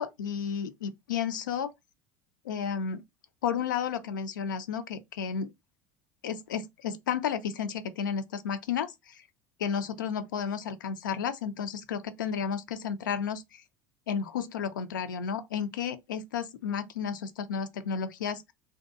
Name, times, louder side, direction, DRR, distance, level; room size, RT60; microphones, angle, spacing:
voice 1, 0.0-1.7 2.5-3.0 3.4-5.5 6.2-9.2 9.6-13.6 14.1-18.5, left 7 dB, 80° left, 0.4 m, -32 dB
2.6 x 2.2 x 2.4 m
hypercardioid pair, 70°, 10 cm